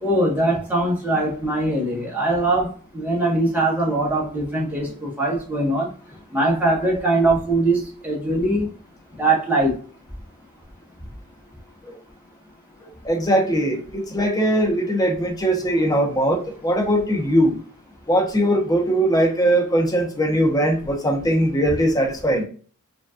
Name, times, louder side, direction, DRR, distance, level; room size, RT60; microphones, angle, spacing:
voice 1, 0.0-5.9 6.3-8.7 9.2-9.8, right 2 dB, 10° right, 1.4 m, -21 dB
voice 2, 13.0-17.5 18.1-22.4, right 1 dB, 15° left, 1.0 m, -20 dB
4.9 x 2.9 x 2.5 m
head